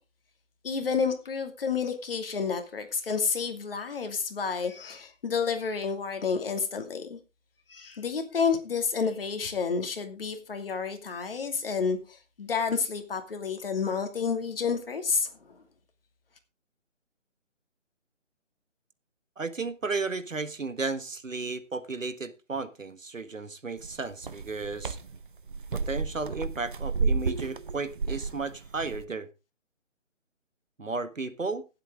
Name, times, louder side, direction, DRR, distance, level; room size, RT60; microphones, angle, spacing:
voice 1, 0.6-7.2 7.7-15.6, left 5 dB, 50° left, 2.5 m, -30 dB
voice 2, 19.4-25.0 25.7-29.3 30.8-31.6, right 4 dB, 90° right, 1.7 m, -34 dB
sound 1, 23.8-29.0, right 4 dB, 40° right, 0.7 m, -32 dB
18.0 x 8.0 x 3.7 m
figure-of-eight pair, 160°, 38 cm